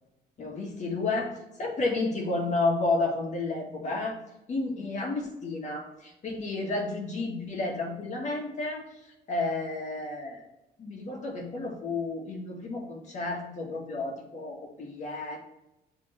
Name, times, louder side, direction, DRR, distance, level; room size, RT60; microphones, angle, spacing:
voice 1, 0.4-4.2 4.5-8.9 9.3-10.5 10.8-15.4, left 3 dB, 45° left, 0 dB, 2.0 m, -31 dB
8.5 x 3.8 x 3.3 m, 0.94 s
cardioid pair, 110°, 17 cm